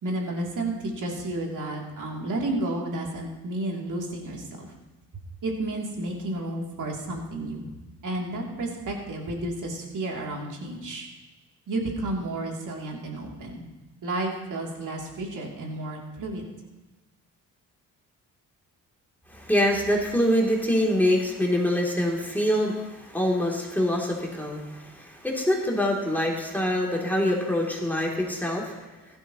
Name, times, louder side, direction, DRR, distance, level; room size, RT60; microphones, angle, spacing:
voice 1, 0.0-4.7 5.4-7.7 8.0-11.1 11.7-13.7 14.0-16.4, right 2 dB, 60° right, -1 dB, 3.1 m, -31 dB
voice 2, 19.3-28.8, left 1 dB, 5° left, -3 dB, 3.1 m, -25 dB
15.5 x 12.5 x 3.1 m, 1.1 s
cardioid pair, 70°, 35 cm